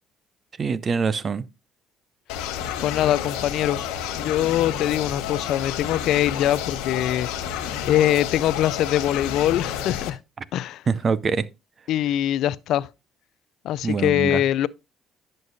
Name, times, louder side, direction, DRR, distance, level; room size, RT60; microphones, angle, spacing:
voice 1, 0.6-1.4 10.9-11.5 13.8-14.4, right 5 dB, 40° right, 0.5 m, -24 dB
sound 1, 2.3-10.1, left 9 dB, 85° left, 1.1 m, -30 dB
voice 2, 2.8-3.8 4.2-7.3 7.9-10.2 10.5-10.8 11.9-12.9 13.6-14.7, left 12 dB, 70° left, 0.3 m, -23 dB
10.5 x 6.5 x 2.6 m
supercardioid pair, 80°, 0 cm